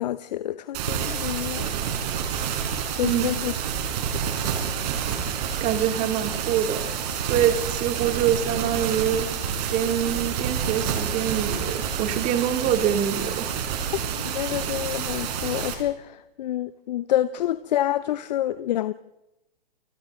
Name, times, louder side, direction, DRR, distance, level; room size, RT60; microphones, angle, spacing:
voice 1, 0.0-1.7 2.9-3.5 14.2-18.9, left 12 dB, 45° left, 0.8 m, -27 dB
sound 1, 0.7-15.7, right 7 dB, 45° right, 5.2 m, -28 dB
voice 2, 5.6-6.8 7.2-9.3 9.7-13.5, right 9 dB, 25° right, 2.9 m, -25 dB
29.5 x 25.5 x 3.8 m
hypercardioid pair, 125°, 29 cm